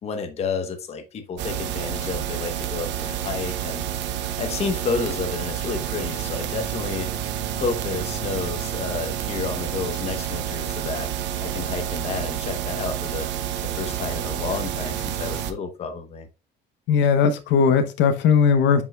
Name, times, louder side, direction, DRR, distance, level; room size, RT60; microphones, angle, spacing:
voice 1, 0.0-3.9 4.4-7.1 7.5-11.1 11.4-13.3 13.6-16.3, left 5 dB, 35° left, 0.9 m, -30 dB
sound 1, 1.4-15.5, right 10 dB, 75° right, 0.8 m, -29 dB
voice 2, 16.9-18.8, left 6 dB, 75° left, 0.8 m, -18 dB
7.7 x 5.5 x 2.3 m
cardioid pair, 180°, 19 cm